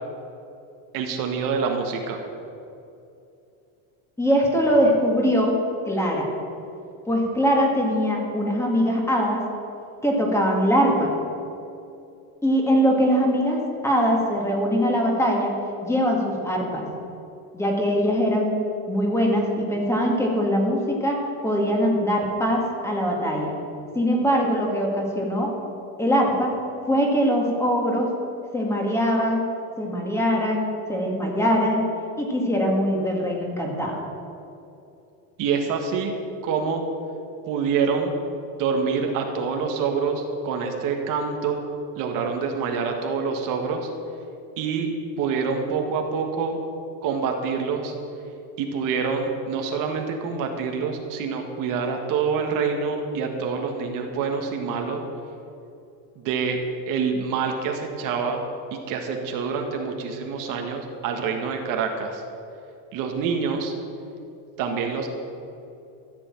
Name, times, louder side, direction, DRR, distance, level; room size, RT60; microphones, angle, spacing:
voice 1, 0.9-2.2 35.4-36.8 37.5-38.1 38.6-41.6 42.0-43.9 44.6-44.9 45.2-46.6 47.0-47.9 48.6-55.0 56.2-56.6 56.9-58.4 58.7-62.2 62.9-63.7 64.6-65.1, right 5 dB, 50° right, 3 dB, 1.6 m, -26 dB
voice 2, 4.2-5.6 5.9-6.3 7.1-9.4 10.0-11.1 12.4-15.5 15.8-16.9 17.5-18.6 18.9-23.5 24.0-25.5 26.0-26.6 26.9-28.1 28.5-29.5 29.8-31.8 32.2-34.0, equal, 5° left, -1 dB, 2.0 m, -22 dB
14.0 x 6.9 x 8.7 m, 2.7 s
cardioid pair, 155°, 40 cm